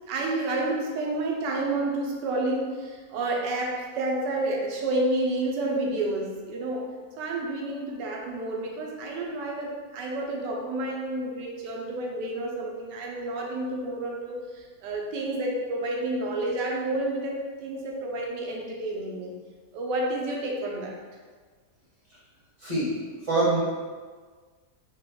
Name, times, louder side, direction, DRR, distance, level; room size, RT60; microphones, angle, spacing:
voice 1, 0.1-6.9 7.2-14.4 14.8-19.3 19.7-20.9, right 2 dB, 85° right, 0 dB, 1.3 m, -30 dB
voice 2, 22.6-22.9 23.2-23.6, right 2 dB, 20° right, -12 dB, 1.1 m, -24 dB
3.3 x 2.1 x 3.7 m, 1.5 s
omnidirectional pair, 1.8 m